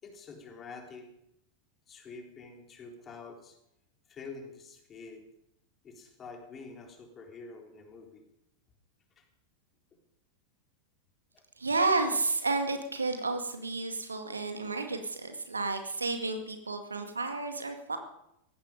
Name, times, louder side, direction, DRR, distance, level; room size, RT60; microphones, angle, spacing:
voice 1, 0.0-1.1 1.9-3.6 4.1-5.2 5.8-8.2 9.2-9.3 9.9-10.0 11.3-11.4, left 4 dB, 25° left, 3 dB, 3.7 m, -47 dB
voice 2, 11.6-18.0, right 3 dB, 75° right, 7 dB, 2.0 m, -31 dB
18.0 x 15.0 x 5.2 m, 0.80 s
figure-of-eight pair, 90°, 0 cm